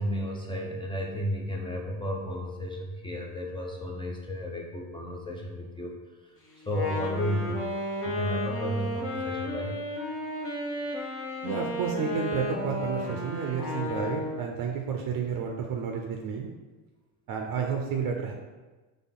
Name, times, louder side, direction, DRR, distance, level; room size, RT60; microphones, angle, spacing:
voice 1, 0.0-6.0 6.2-7.7 8.0-9.8, equal, 10° left, -1 dB, 0.5 m, -33 dB
Wind instrument woodwind instrument, 6.6-14.6, left 1 dB, 30° left, 0.9 m, -33 dB
voice 2, 11.4-16.5 17.3-18.3, right 6 dB, 50° right, 2 dB, 0.6 m, -31 dB
4.1 x 3.4 x 3.8 m, 1.2 s
supercardioid pair, 100°, 43 cm